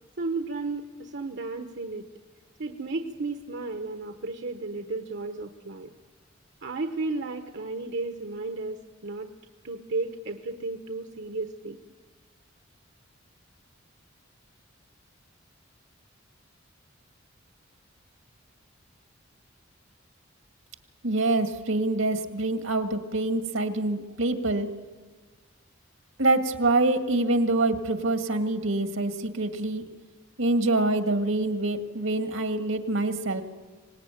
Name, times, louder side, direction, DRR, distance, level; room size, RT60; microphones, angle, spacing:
voice 1, 0.2-2.0 2.6-5.9 6.6-9.3 9.6-11.8, right 3 dB, 60° right, 6 dB, 1.1 m, -33 dB
voice 2, 21.0-24.7 26.2-29.8 30.4-33.4, right 2 dB, 80° right, 7 dB, 2.1 m, -25 dB
25.0 x 19.5 x 9.2 m, 1.4 s
head